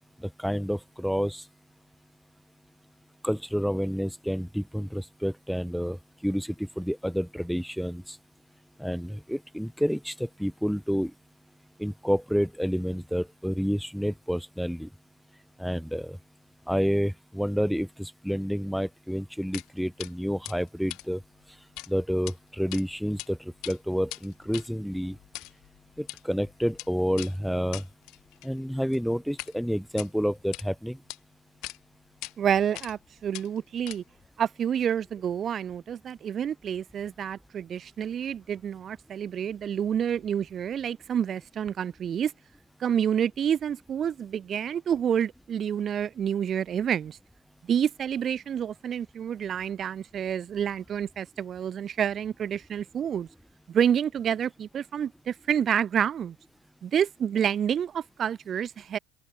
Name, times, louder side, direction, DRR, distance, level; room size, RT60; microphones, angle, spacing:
voice 1, 0.2-1.4 3.2-8.2 8.8-11.1 11.8-14.9 15.6-16.2 16.7-21.2 21.9-25.2 26.0-27.8 28.4-31.0, equal, ahead, 0.8 m, -29 dB
sound 1, 19.5-19.7 20.0-20.1 20.4-21.9 22.2-22.3 22.7-23.3 23.5-29.5 29.9-30.7 31.1-31.2 31.6-31.8 32.2-32.3 32.7-33.0 33.3-34.3, left 21 dB, 60° left, 1.4 m, -42 dB
voice 2, 32.4-34.0 34.4-42.3 42.8-47.2 47.7-53.3 53.7-56.4 56.8-59.0, right 8 dB, 30° right, 0.5 m, -28 dB
open air
cardioid pair, 140°, 0 cm